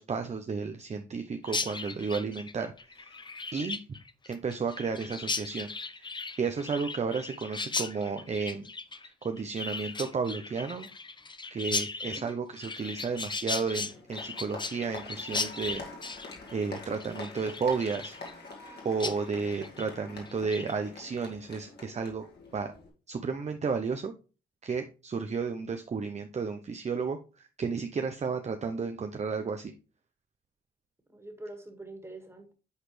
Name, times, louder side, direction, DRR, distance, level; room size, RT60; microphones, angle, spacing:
voice 1, 0.0-2.7 3.0-3.2 3.5-3.8 4.3-5.7 6.0-6.1 6.4-8.6 9.0-10.9 11.5-15.8 16.5-18.2 18.8-22.2 22.5-22.7 23.1-24.1 24.6-29.7, right 5 dB, 35° right, 6 dB, 0.7 m, -32 dB
Chirp tweet, 1.4-18.7 19.0-19.2 19.5-19.9 20.3-20.7, left 3 dB, 20° left, 0.7 m, -37 dB
Applause, 12.8-22.9, left 3 dB, 55° left, 2.3 m, -46 dB
voice 2, 31.1-32.5, right 2 dB, 10° right, 5 dB, 2.0 m, -45 dB
8.0 x 4.2 x 3.3 m, 0.34 s
supercardioid pair, 60°, 20 cm